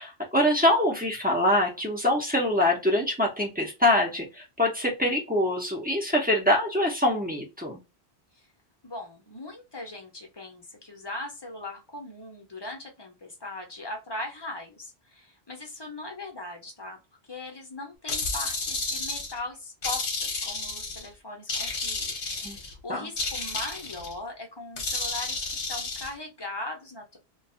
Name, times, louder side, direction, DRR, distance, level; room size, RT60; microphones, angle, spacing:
voice 1, 0.0-7.8 22.4-22.6 22.9-23.1, left 1 dB, 10° right, -1 dB, 0.6 m, -24 dB
voice 2, 8.8-17.0 17.3-27.2, left 2 dB, 25° left, 2 dB, 0.7 m, -39 dB
sound 1, 18.1-19.4 19.8-21.1 21.5-22.7 23.2-24.1 24.8-26.1, left 3 dB, 55° left, 1.0 m, -31 dB
2.5 x 2.3 x 2.5 m, 0.26 s
omnidirectional pair, 1.1 m